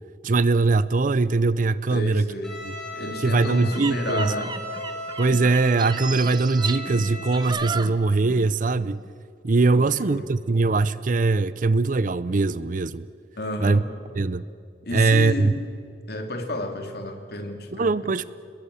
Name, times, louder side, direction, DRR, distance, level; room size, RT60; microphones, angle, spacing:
voice 1, 0.2-2.2 2.7-2.8 3.2-4.3 5.2-9.0 9.4-13.0 13.6-13.8 14.2-14.4 14.9-15.5 17.8-18.2, right 3 dB, 45° right, 0.6 m, -21 dB
voice 2, 1.9-2.6 2.9-4.5 9.7-10.3 13.4-13.8 14.8-15.6 16.1-17.9, left 1 dB, 55° left, 2.9 m, -31 dB
Bowed string instrument, 2.4-7.5, left 1 dB, 5° left, 7.8 m, -37 dB
sound 1, 3.6-8.5 8.8-9.1, right 5 dB, 25° right, 0.9 m, -34 dB
29.5 x 21.5 x 7.1 m
head